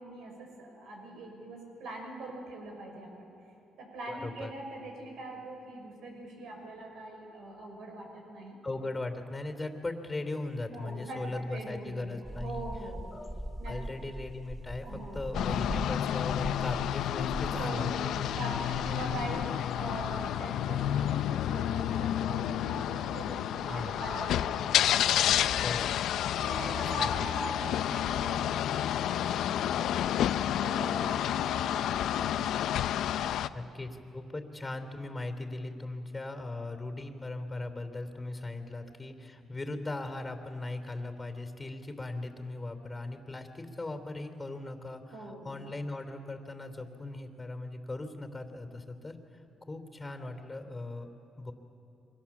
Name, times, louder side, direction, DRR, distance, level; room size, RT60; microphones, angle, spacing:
voice 1, 0.0-3.2 3.8-8.6 10.7-13.0 13.6-13.9 14.8-15.2 17.3-19.5 19.7-25.6 26.4-30.1 30.6-32.6 33.2-33.6 45.1-45.5, right 1 dB, 80° right, 2 dB, 6.0 m, -42 dB
voice 2, 4.1-4.5 8.6-12.7 13.1-13.3 13.6-18.0 19.1-19.2 23.7-24.0 25.6-26.1 26.6-27.2 33.5-49.2 49.6-51.1 51.4-51.5, left 2 dB, 20° left, 7 dB, 3.1 m, -38 dB
sound 1, 12.2-27.0, right 1 dB, ahead, 0.6 m, -43 dB
sound 2, 15.3-33.5, left 11 dB, 80° left, 0.6 m, -30 dB
29.0 x 24.0 x 7.3 m, 2.6 s
cardioid pair, 90°, 0 cm